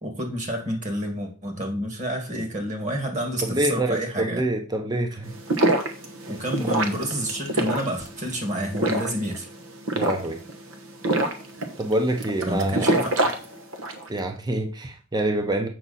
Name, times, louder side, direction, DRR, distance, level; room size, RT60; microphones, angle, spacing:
voice 1, 0.0-4.4 6.3-9.5 12.5-13.1, equal, 35° right, 2 dB, 2.1 m, -29 dB
voice 2, 3.4-5.3 6.6-6.7 9.9-10.4 11.8-12.9 14.1-15.7, right 1 dB, 20° right, 5 dB, 0.8 m, -26 dB
sound 1, 5.3-14.1, right 1 dB, 70° right, 1.2 m, -26 dB
7.8 x 6.0 x 4.2 m, 0.36 s
head